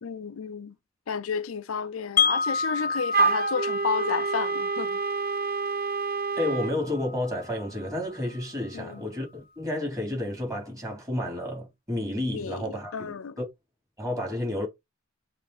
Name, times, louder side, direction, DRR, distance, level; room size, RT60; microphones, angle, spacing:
voice 1, 0.0-0.7 1.1-5.0 8.7-9.1 12.3-13.4, left 6 dB, 75° left, 0.5 m, -32 dB
Wind chime, 2.2-8.1, left 5 dB, 45° left, 0.8 m, -30 dB
Wind instrument woodwind instrument, 3.1-6.8, right 5 dB, 45° right, 0.6 m, -28 dB
voice 2, 6.4-13.4 14.0-14.7, left 1 dB, 15° right, 3.6 m, -31 dB
6.5 x 3.3 x 4.8 m
head